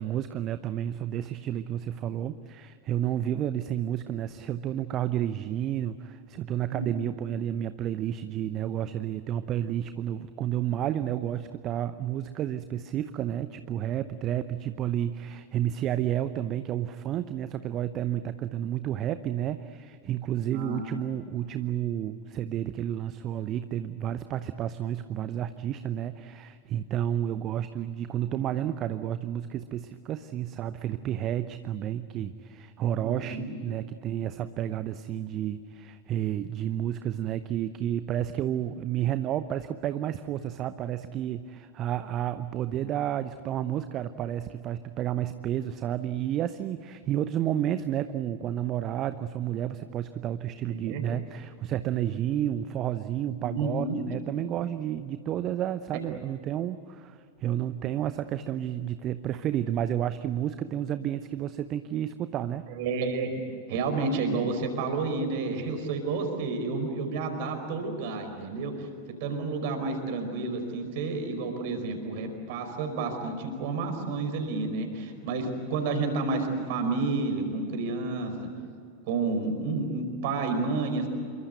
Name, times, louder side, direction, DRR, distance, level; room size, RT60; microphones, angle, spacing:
voice 1, 0.0-62.7, right 11 dB, 35° right, 12 dB, 0.8 m, -31 dB
voice 2, 20.5-20.8 33.0-33.6 50.6-51.0 53.4-54.0 62.7-63.3 63.7-68.9 69.2-78.4 79.1-81.1, right 3 dB, 50° right, 6 dB, 5.0 m, -30 dB
27.5 x 23.5 x 8.0 m, 2.5 s
figure-of-eight pair, 90°, 0 cm